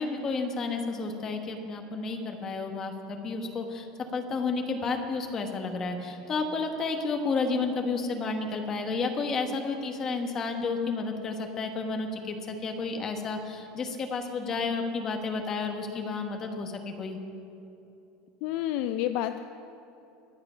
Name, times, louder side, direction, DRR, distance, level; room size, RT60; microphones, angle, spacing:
voice 1, 0.0-3.9 4.1-17.2, left 4 dB, 20° left, 4 dB, 1.1 m, -31 dB
voice 2, 18.4-19.4, left 12 dB, 45° left, 10 dB, 0.4 m, -29 dB
23.0 x 7.8 x 5.6 m, 2.8 s
cardioid pair, 180°, 2 cm